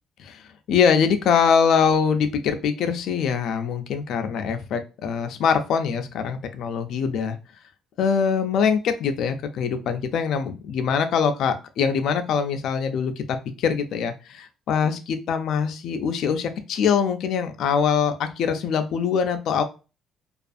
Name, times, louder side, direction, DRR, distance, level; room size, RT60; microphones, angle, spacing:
voice 1, 0.7-7.4 8.0-19.6, left 6 dB, 65° left, 7 dB, 0.4 m, -23 dB
2.4 x 2.3 x 2.5 m, 0.31 s
cardioid pair, 145°, 0 cm